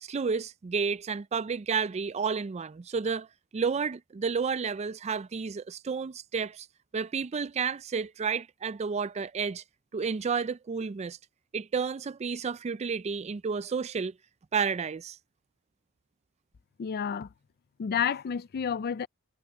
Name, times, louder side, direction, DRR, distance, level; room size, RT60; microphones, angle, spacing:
voice 1, 0.0-3.3 3.5-6.7 6.9-9.6 9.9-11.2 11.5-14.1 14.5-15.2, right 5 dB, 30° right, 0.4 m, -31 dB
voice 2, 16.8-17.3 17.8-19.1, left 7 dB, 45° left, 0.4 m, -30 dB
head